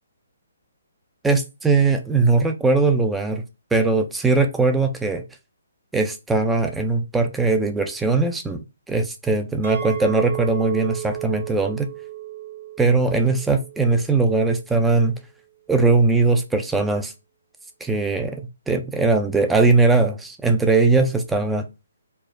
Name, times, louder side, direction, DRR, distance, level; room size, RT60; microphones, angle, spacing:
voice 1, 1.2-3.4 3.7-5.2 5.9-8.6 8.9-11.9 12.8-15.1 15.7-17.1 17.8-21.6, right 3 dB, 5° right, 6 dB, 0.3 m, -20 dB
Chink clink, 9.6-14.8, right 12 dB, 45° right, 1.2 m, -34 dB
4.4 x 2.0 x 2.4 m, 0.27 s
figure-of-eight pair, 135°, 0 cm